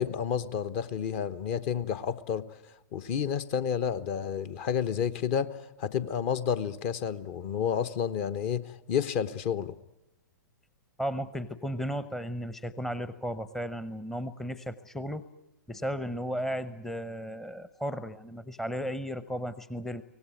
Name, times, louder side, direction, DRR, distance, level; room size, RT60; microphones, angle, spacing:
voice 1, 0.0-2.4 2.9-9.7, left 8 dB, 35° left, 1.1 m, -30 dB
voice 2, 11.0-15.2 15.7-20.0, equal, 5° left, 0.8 m, -35 dB
24.5 x 18.5 x 9.1 m
figure-of-eight pair, 110°, 10 cm